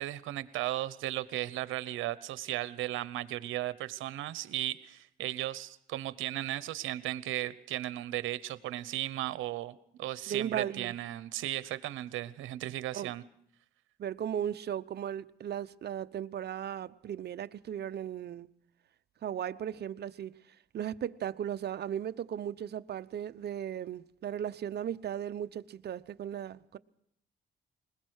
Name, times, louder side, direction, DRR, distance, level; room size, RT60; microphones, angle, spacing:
voice 1, 0.0-13.2, right 14 dB, 85° right, 0.9 m, -36 dB
voice 2, 10.3-10.9 12.9-13.1 14.0-18.5 19.2-20.3 20.7-26.8, right 10 dB, 55° right, 0.8 m, -36 dB
21.0 x 20.5 x 6.5 m
cardioid pair, 90°, 20 cm